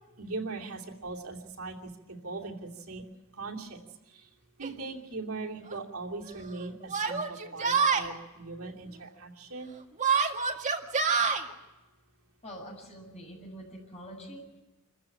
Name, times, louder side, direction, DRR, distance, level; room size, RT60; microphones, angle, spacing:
voice 1, 0.2-3.0 3.3-3.8 4.1-4.3 4.6-9.7, right 3 dB, 85° right, -1 dB, 2.9 m, -40 dB
Yell, 4.6-4.7 5.7-5.8 6.9-8.1 10.0-11.4, right 5 dB, 35° right, 1.9 m, -26 dB
voice 2, 12.4-14.6, equal, 30° left, 0 dB, 7.7 m, -45 dB
26.5 x 15.0 x 8.6 m, 1.1 s
head